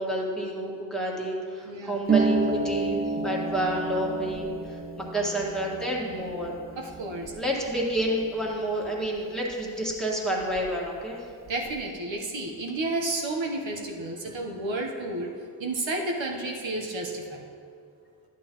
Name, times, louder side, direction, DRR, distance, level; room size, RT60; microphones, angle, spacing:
voice 1, 0.0-6.6 7.3-11.2, right 1 dB, ahead, -4 dB, 1.8 m, -29 dB
voice 2, 1.6-2.0 6.8-7.3 11.5-15.3 15.6-17.5, right 2 dB, 85° right, 0 dB, 1.2 m, -31 dB
Harp, 2.1-9.5 9.8-10.9 11.2-11.8, right 3 dB, 25° right, 0.4 m, -31 dB
sound 1, 3.1-11.6, right 4 dB, 60° right, 2.5 m, -47 dB
11.5 x 8.6 x 3.1 m, 2.3 s
wide cardioid pair, 65°, 45 cm